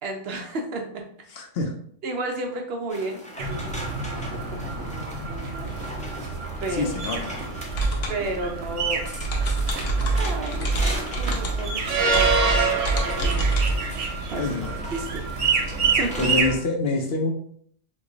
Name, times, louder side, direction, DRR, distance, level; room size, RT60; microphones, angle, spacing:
voice 1, 0.0-1.0 2.0-3.7 4.0-5.7 6.6-6.8 8.1-9.0 9.9-10.9 11.2-13.5 14.3-14.4 14.9-15.3 16.0-16.3, right 2 dB, 65° right, 2 dB, 0.8 m, -33 dB
voice 2, 1.3-1.8 6.7-7.4 14.4-14.8 16.2-17.3, left 3 dB, 65° left, 3 dB, 0.7 m, -26 dB
sound 1, 2.9-16.4, equal, 10° left, 0.3 m, -39 dB
sound 2, 3.4-16.5, right 4 dB, 90° right, 1.0 m, -27 dB
sound 3, 7.7-13.7, right 2 dB, 85° left, 1.1 m, -26 dB
3.1 x 2.2 x 3.7 m, 0.62 s
omnidirectional pair, 1.2 m